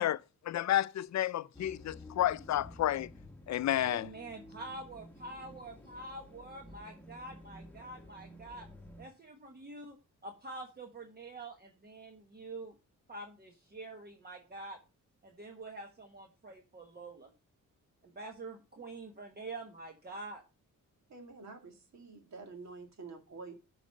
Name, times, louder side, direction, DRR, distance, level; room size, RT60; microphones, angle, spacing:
voice 1, 0.0-3.1 3.5-4.1, left 12 dB, 60° left, 0.5 m, -31 dB
sound 1, 1.5-9.1, left 1 dB, 5° left, 1.4 m, -52 dB
voice 2, 3.8-8.7 9.0-12.8 13.1-14.8 15.2-17.3 18.0-20.4, right 2 dB, 30° right, 1.2 m, -46 dB
voice 3, 21.1-23.5, right 4 dB, 55° right, 2.5 m, -48 dB
12.5 x 5.0 x 5.4 m
wide cardioid pair, 135°, 32 cm